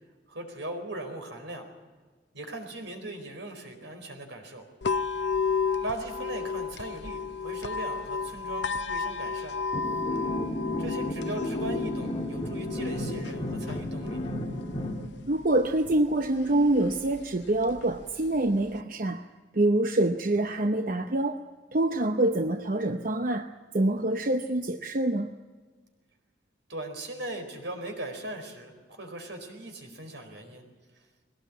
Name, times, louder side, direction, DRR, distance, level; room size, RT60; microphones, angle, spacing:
voice 1, 0.3-1.6 2.3-4.6 5.8-9.6 10.8-14.2 26.7-30.6, right 1 dB, 85° right, 5 dB, 4.4 m, -39 dB
sound 1, 4.8-18.8, left 5 dB, 70° left, 0.7 m, -34 dB
sound 2, 9.7-15.1, left 1 dB, 30° left, 2.1 m, -33 dB
voice 2, 15.3-19.2 19.5-21.4 21.7-23.5 23.7-25.3, right 1 dB, 50° right, 7 dB, 0.8 m, -26 dB
21.5 x 18.0 x 8.5 m, 1.4 s
head